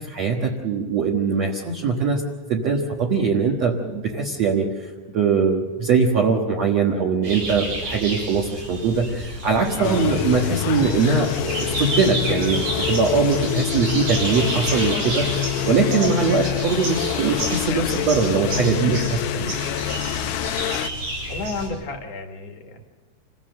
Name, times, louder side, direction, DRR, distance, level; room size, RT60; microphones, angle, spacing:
voice 1, 0.0-2.2 2.5-19.6, right 5 dB, 55° right, -1 dB, 2.1 m, -22 dB
sound 1, 7.2-21.7, right 1 dB, 85° right, 10.0 m, -30 dB
sound 2, 9.8-20.9, left 13 dB, 75° left, 2.3 m, -26 dB
voice 2, 21.3-22.8, left 2 dB, 50° left, 3 dB, 2.4 m, -31 dB
27.5 x 16.5 x 6.6 m, 1.3 s
omnidirectional pair, 4.8 m